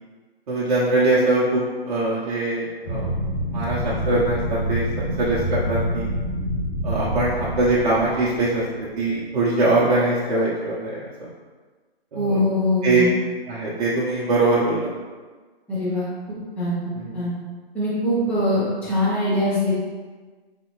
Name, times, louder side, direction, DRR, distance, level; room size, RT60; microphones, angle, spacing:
voice 1, 0.5-3.1 3.5-6.1 6.8-11.3 12.1-12.4 12.8-13.0 13.5-14.9 16.9-17.2, right 2 dB, 40° right, -7 dB, 0.8 m, -22 dB
sound 1, 2.8-9.0, equal, 75° left, 1.2 m, -27 dB
voice 2, 12.1-13.1 15.7-16.1 16.6-16.8 17.1-17.3 17.7-19.7, left 1 dB, 5° left, -10 dB, 0.6 m, -22 dB
4.1 x 2.8 x 3.1 m, 1.4 s
figure-of-eight pair, 145°, 31 cm